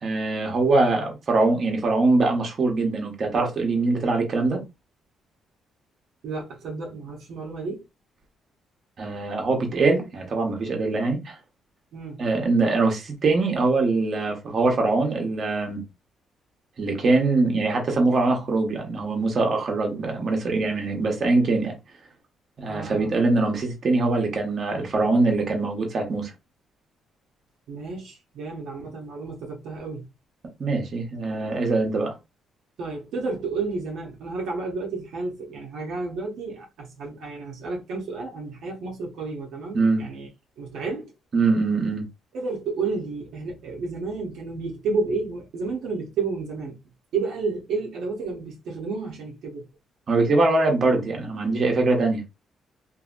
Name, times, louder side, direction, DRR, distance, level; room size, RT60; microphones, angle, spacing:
voice 1, 0.0-4.6 9.0-11.3 12.2-15.8 16.8-21.7 22.6-26.3 30.6-32.1 39.7-40.1 41.3-42.0 50.1-52.2, right 3 dB, 50° right, 1.0 m, -23 dB
voice 2, 6.2-7.8 11.9-12.2 22.7-23.2 27.7-30.1 32.8-40.3 40.6-41.1 42.3-46.8 47.1-49.7, right 4 dB, 80° right, 0.8 m, -31 dB
2.7 x 2.7 x 2.5 m
cardioid pair, 90°, 0 cm